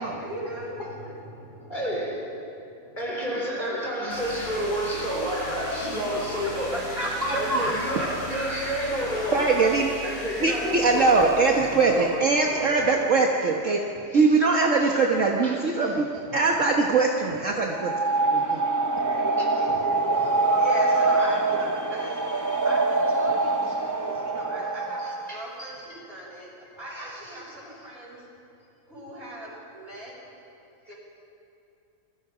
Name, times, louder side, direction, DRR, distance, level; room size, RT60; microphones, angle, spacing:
voice 1, 0.2-2.0 2.7-3.0 6.4-8.8 15.7-16.2 18.6-22.2 22.6-28.2 28.9-30.1 30.9-31.0, right 1 dB, 40° right, -4 dB, 6.5 m, -38 dB
voice 2, 1.7-2.5 3.0-6.8 7.3-9.7 10.0-11.1 11.6-13.0 14.1-14.3 14.8-14.9 15.4-15.6 16.2-16.4 17.3-17.4 19.0-19.1 19.4-19.8 20.2-20.3 21.2-21.4 25.0-25.4 26.8-27.4 30.9-31.0, equal, 30° left, -2 dB, 4.7 m, -31 dB
sound 1, 4.1-12.8, left 1 dB, 90° left, 7.3 m, -39 dB
voice 3, 7.2-7.6 9.3-9.9 10.4-13.8 14.1-16.1 16.3-17.9 18.3-18.6, right 4 dB, 55° right, 0 dB, 1.6 m, -22 dB
sound 2, 17.7-25.4, right 3 dB, 20° right, 0.4 m, -24 dB
28.5 x 21.5 x 5.0 m, 2.7 s
omnidirectional pair, 1.6 m